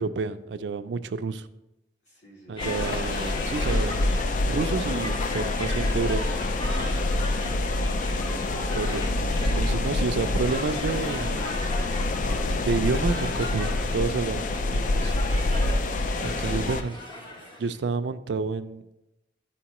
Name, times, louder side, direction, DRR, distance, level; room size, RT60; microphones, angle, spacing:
voice 1, 0.0-1.5 2.5-3.9 4.5-6.2 8.7-11.6 12.6-15.1 16.2-17.0 17.6-18.9, right 4 dB, 75° right, 11 dB, 0.4 m, -29 dB
voice 2, 2.0-2.8 4.4-8.1 17.2-17.6, equal, 70° left, -5 dB, 2.5 m, -50 dB
sound 1, 2.6-16.8, left 2 dB, 45° left, 0.3 m, -26 dB
sound 2, 2.6-17.8, left 1 dB, 25° left, 0.9 m, -38 dB
11.5 x 4.3 x 3.0 m, 0.92 s
head